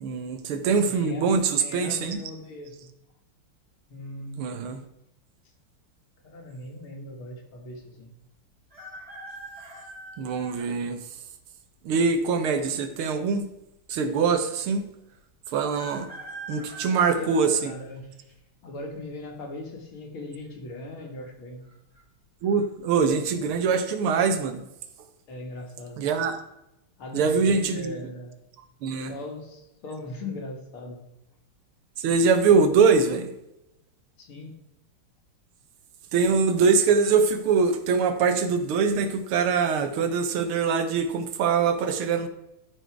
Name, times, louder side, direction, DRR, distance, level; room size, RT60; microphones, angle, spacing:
voice 1, 0.0-2.2 4.4-4.8 10.2-11.0 11.8-13.5 13.9-14.9 15.5-16.1 16.5-17.7 22.4-24.6 26.0-26.4 27.1-27.9 28.8-29.1 32.0-33.3 36.1-42.3, right 5 dB, 75° right, 8 dB, 1.8 m, -23 dB
voice 2, 0.8-2.9 3.9-4.5 6.2-8.1 16.9-18.1 18.6-21.7 25.3-26.0 27.0-28.4 29.0-31.1 34.2-34.6, left 2 dB, 70° left, 2 dB, 2.5 m, -39 dB
sound 1, 8.7-10.7 11.4-11.5 12.6-13.2 13.5-13.6 13.8-13.9 15.7-18.3 18.8-19.3 20.4-20.7 21.0-21.1 21.6-22.0 22.5-22.7, right 1 dB, 15° right, 2.4 m, -43 dB
12.5 x 4.6 x 4.5 m, 0.88 s
omnidirectional pair, 2.4 m